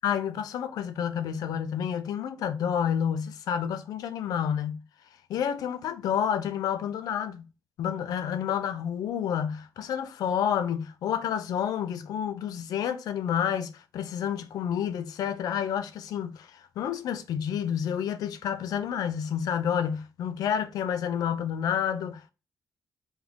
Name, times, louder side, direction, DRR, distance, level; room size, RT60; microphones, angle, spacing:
voice 1, 0.0-4.8 5.3-7.4 7.8-22.3, left 8 dB, 90° left, 0.6 m, -29 dB
4.2 x 3.6 x 2.9 m
cardioid pair, 110°, 6 cm